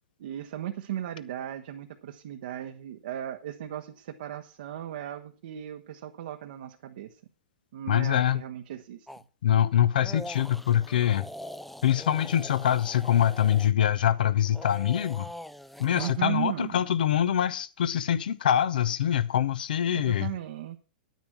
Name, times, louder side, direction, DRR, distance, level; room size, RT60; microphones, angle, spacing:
voice 1, 0.2-7.2 7.7-9.1 15.9-16.8 19.9-20.8, right 11 dB, 65° right, 0.9 m, -36 dB
voice 2, 7.9-8.4 9.4-11.3 11.8-15.3 15.8-20.3, left 10 dB, 70° left, 0.9 m, -24 dB
sound 1, 9.1-9.2 10.0-13.7 14.4-16.2, left 1 dB, ahead, 0.4 m, -43 dB
9.4 x 9.4 x 5.9 m
hypercardioid pair, 110°, 5 cm